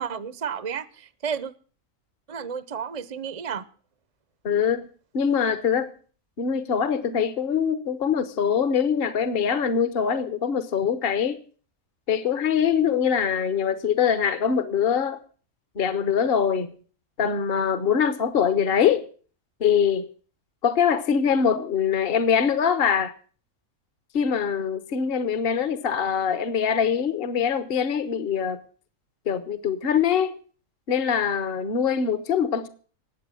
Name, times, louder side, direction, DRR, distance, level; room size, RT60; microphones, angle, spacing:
voice 1, 0.0-1.5 2.3-3.7, right 7 dB, 35° right, 0.7 m, -32 dB
voice 2, 4.4-4.9 5.1-5.9 6.4-11.4 12.1-15.2 15.7-16.7 17.2-19.1 19.6-20.1 20.6-23.1 24.1-28.6 29.3-30.3 30.9-32.7, left 7 dB, 45° left, 1.2 m, -23 dB
19.5 x 7.9 x 7.7 m
omnidirectional pair, 1.5 m